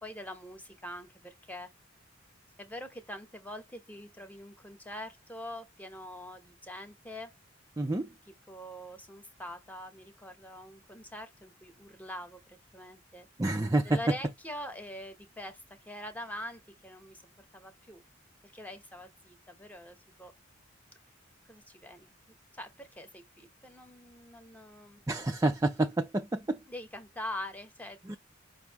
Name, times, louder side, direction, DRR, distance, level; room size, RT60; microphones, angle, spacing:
voice 1, 0.0-1.7 2.6-7.4 8.3-13.3 13.8-17.2 17.5-18.0 18.4-20.3 21.5-25.0 26.7-28.2, left 1 dB, 10° left, 1.0 m, -44 dB
voice 2, 7.8-8.1 13.4-14.0 25.1-26.6 28.1-28.2, right 2 dB, 15° right, 0.4 m, -28 dB
5.7 x 2.7 x 3.5 m
head